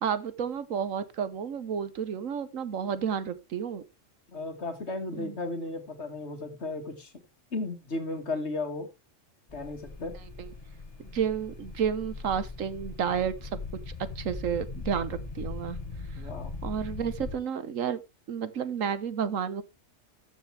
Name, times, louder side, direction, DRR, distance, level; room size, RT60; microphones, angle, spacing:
voice 1, 0.0-3.8 5.2-5.4 10.4-10.5 11.0-13.5 14.2-15.8 16.6-18.0 18.3-19.6, right 7 dB, 85° right, 1.4 m, -31 dB
voice 2, 4.3-7.1 7.5-8.9 9.5-10.2 16.1-16.6, left 2 dB, 60° left, 2.2 m, -35 dB
sound 1, 9.5-17.3, left 3 dB, 30° left, 2.1 m, -40 dB
14.0 x 7.1 x 3.4 m
omnidirectional pair, 1.3 m